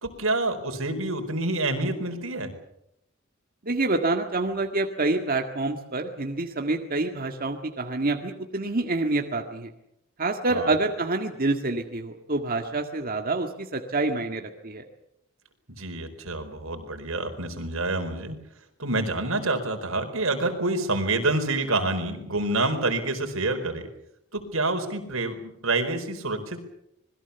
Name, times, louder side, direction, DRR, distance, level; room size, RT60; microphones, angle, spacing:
voice 1, 0.0-2.5 10.5-10.7 15.8-18.4 18.8-23.9 24.3-26.6, right 2 dB, 90° right, 6 dB, 4.6 m, -27 dB
voice 2, 3.6-9.7 10.2-14.8, right 2 dB, 45° right, 3 dB, 1.9 m, -27 dB
26.5 x 21.0 x 7.1 m, 0.78 s
head